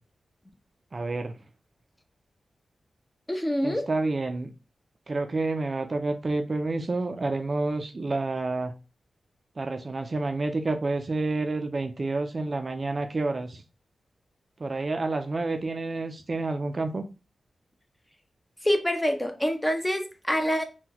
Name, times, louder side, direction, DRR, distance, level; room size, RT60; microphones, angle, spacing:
voice 1, 0.9-1.3 3.6-4.5 5.1-8.7 9.6-13.6 14.6-17.0, right 3 dB, 45° right, 7 dB, 0.4 m, -29 dB
voice 2, 3.3-3.8 18.6-20.6, equal, 10° left, 5 dB, 0.6 m, -26 dB
3.7 x 2.2 x 2.8 m, 0.31 s
wide cardioid pair, 80°, 0 cm